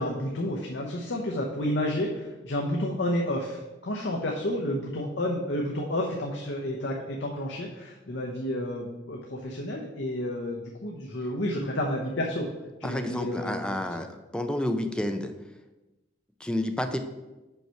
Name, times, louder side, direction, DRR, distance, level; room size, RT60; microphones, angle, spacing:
voice 1, 0.0-12.5 12.8-13.6, left 1 dB, 70° left, -1 dB, 0.8 m, -30 dB
voice 2, 12.8-15.3 16.4-17.0, left 1 dB, 5° left, 6 dB, 0.5 m, -30 dB
5.5 x 4.5 x 5.7 m, 1.1 s
head